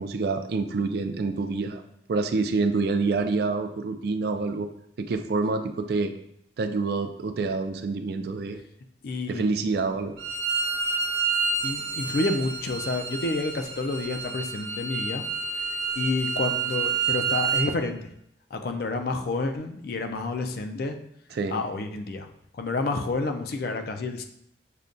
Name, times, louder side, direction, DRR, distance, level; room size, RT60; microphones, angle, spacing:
voice 1, 0.0-1.8 2.1-4.7 5.0-6.1 6.6-8.6 9.3-10.1 21.3-21.6, right 3 dB, 55° right, 8 dB, 0.3 m, -27 dB
voice 2, 9.0-9.6 11.6-15.2 15.5-15.6 16.0-18.1 18.5-21.0 21.5-22.3 22.5-24.2, left 3 dB, 55° left, 6 dB, 0.4 m, -29 dB
Bowed string instrument, 10.2-17.6, right 5 dB, 90° right, 0.8 m, -29 dB
6.5 x 2.2 x 2.5 m, 0.75 s
head